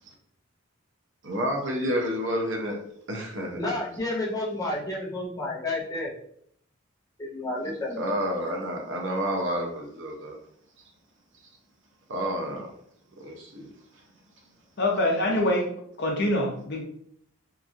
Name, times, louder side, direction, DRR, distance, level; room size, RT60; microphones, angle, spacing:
voice 1, 1.2-2.8 3.1-3.7 8.0-10.4 12.1-12.7 13.2-13.7, equal, 65° right, 1 dB, 0.7 m, -29 dB
voice 2, 3.5-6.1 7.2-8.0, left 2 dB, 20° left, -3 dB, 0.6 m, -30 dB
voice 3, 14.8-15.7 16.0-16.8, left 1 dB, 55° left, 0 dB, 0.7 m, -24 dB
2.9 x 2.5 x 2.5 m, 0.66 s
head